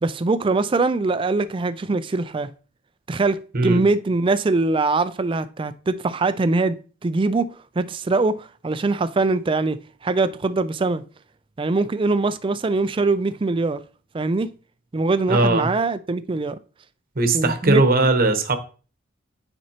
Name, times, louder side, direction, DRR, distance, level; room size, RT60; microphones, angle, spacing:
voice 1, 0.0-2.5 3.1-11.0 11.6-13.8 14.1-14.5 14.9-16.6 17.3-17.8, right 3 dB, 25° right, 0.4 m, -22 dB
voice 2, 15.3-15.7 17.2-18.6, right 2 dB, 45° right, 1.0 m, -19 dB
9.3 x 4.3 x 2.9 m
head